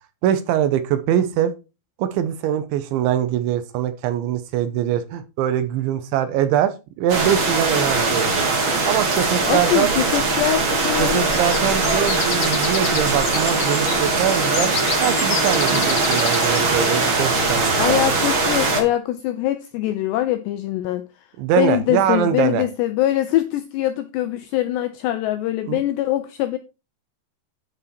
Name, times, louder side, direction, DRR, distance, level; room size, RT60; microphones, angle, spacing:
voice 1, 0.2-1.5 2.0-8.5 8.9-9.9 11.0-14.7 15.0-18.1 21.4-22.6 25.7-25.8, right 10 dB, 75° right, 3.1 m, -23 dB
sound 1, 7.1-18.8, right 3 dB, 45° right, 1.6 m, -21 dB
voice 2, 9.5-11.3 17.8-21.1 21.6-26.6, left 13 dB, 85° left, 2.4 m, -23 dB
sound 2, 11.3-16.7, left 7 dB, 50° left, 3.0 m, -30 dB
10.0 x 7.6 x 4.4 m
omnidirectional pair, 5.7 m